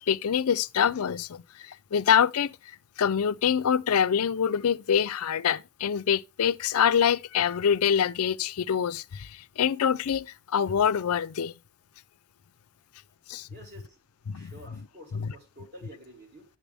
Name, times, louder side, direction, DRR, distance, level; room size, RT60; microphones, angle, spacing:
voice 1, 0.0-2.6 3.0-11.5 13.3-13.5 14.3-14.5, left 8 dB, 80° left, 0.4 m, -25 dB
voice 2, 13.5-14.0 14.3-16.6, right 1 dB, 45° right, 3.0 m, -49 dB
11.0 x 7.3 x 3.4 m
head